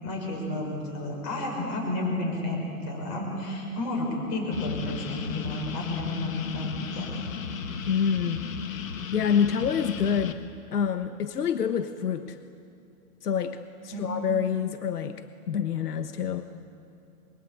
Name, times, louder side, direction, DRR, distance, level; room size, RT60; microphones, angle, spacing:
voice 1, 0.0-7.2 13.9-14.0, left 2 dB, 25° left, 1 dB, 6.5 m, -31 dB
sound 1, 4.5-10.3, left 6 dB, 55° left, 2.0 m, -35 dB
voice 2, 7.8-8.5 9.1-10.4 10.7-12.4 13.2-16.5, left 7 dB, 75° left, 9 dB, 1.4 m, -27 dB
26.5 x 24.0 x 8.6 m, 2.5 s
hypercardioid pair, 170°, 47 cm